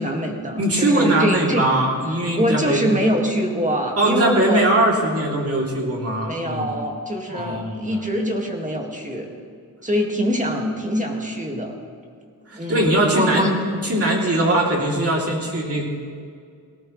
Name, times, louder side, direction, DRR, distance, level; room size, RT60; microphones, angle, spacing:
voice 1, 0.0-1.7 2.3-4.6 6.3-9.3 9.8-11.7 12.5-13.5, equal, 20° right, 1 dB, 1.9 m, -24 dB
voice 2, 0.6-2.9 4.0-6.7 7.3-8.0 12.5-13.6 13.8-15.9, right 1 dB, 40° right, -2 dB, 3.0 m, -21 dB
18.5 x 17.0 x 3.2 m, 2.1 s
wide cardioid pair, 105°, 38 cm